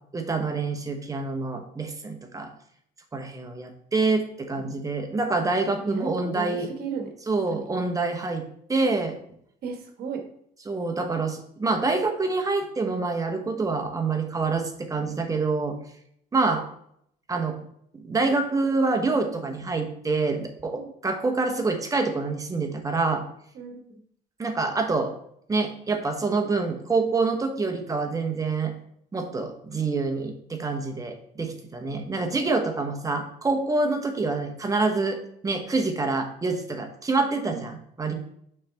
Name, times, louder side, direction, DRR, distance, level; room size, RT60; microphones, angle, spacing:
voice 1, 0.1-2.5 3.1-6.7 7.3-8.4 8.7-9.2 10.7-15.8 16.3-16.6 17.3-17.6 17.9-23.2 24.4-25.1 25.5-28.7 29.1-38.1, right 3 dB, 20° right, 5 dB, 1.1 m, -26 dB
voice 2, 5.8-7.6 9.6-10.2 20.8-20.9 23.5-24.0 37.4-37.6, right 5 dB, 65° right, 3 dB, 1.4 m, -35 dB
6.5 x 5.5 x 3.4 m, 0.69 s
cardioid pair, 110°, 17 cm